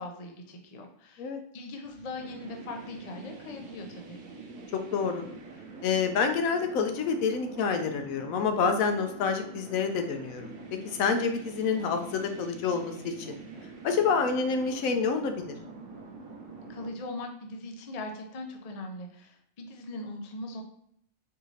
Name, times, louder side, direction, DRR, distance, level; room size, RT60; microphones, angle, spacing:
voice 1, 0.0-4.2 16.7-20.6, left 2 dB, 60° left, 3 dB, 0.4 m, -40 dB
sound 1, 1.9-16.9, right 3 dB, 75° right, 1.0 m, -45 dB
voice 2, 4.7-5.2 5.8-10.5 10.8-13.4 13.8-15.6, left 5 dB, 80° left, 6 dB, 1.0 m, -28 dB
4.6 x 2.6 x 3.1 m, 0.68 s
omnidirectional pair, 1.5 m